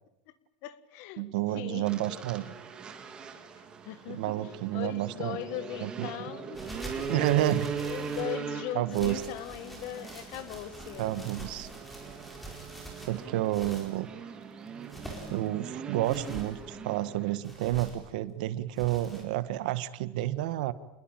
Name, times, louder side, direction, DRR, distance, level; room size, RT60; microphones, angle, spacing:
voice 1, 0.6-2.3 3.5-6.7 7.0-7.2 7.8-11.2, left 13 dB, 40° left, 1.5 m, -40 dB
voice 2, 1.2-2.5 4.1-5.4 5.8-6.1 7.1-7.7 8.7-9.1 11.0-11.7 13.1-14.1 15.3-20.7, right 15 dB, 55° right, 1.4 m, -30 dB
sound 1, 1.8-17.4, right 6 dB, 15° right, 2.1 m, -40 dB
sound 2, 6.5-8.4 8.9-14.0 14.7-15.5 16.0-16.6 17.4-18.1 18.8-19.2, right 1 dB, ahead, 4.6 m, -45 dB
27.5 x 21.5 x 9.0 m
supercardioid pair, 175°, 5 cm